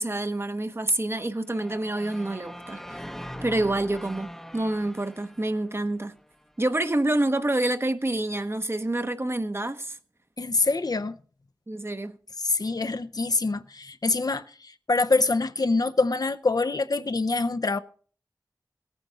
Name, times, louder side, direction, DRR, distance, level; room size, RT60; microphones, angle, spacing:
voice 1, 0.0-3.0 3.4-6.2 6.6-10.0 11.7-12.2, right 1 dB, 35° right, 0.9 m, -27 dB
sound 1, 1.5-6.5, equal, 5° left, 0.7 m, -42 dB
voice 2, 10.4-11.2 12.4-17.8, left 3 dB, 60° left, 0.6 m, -25 dB
17.5 x 9.3 x 3.9 m
wide cardioid pair, 45°, 7 cm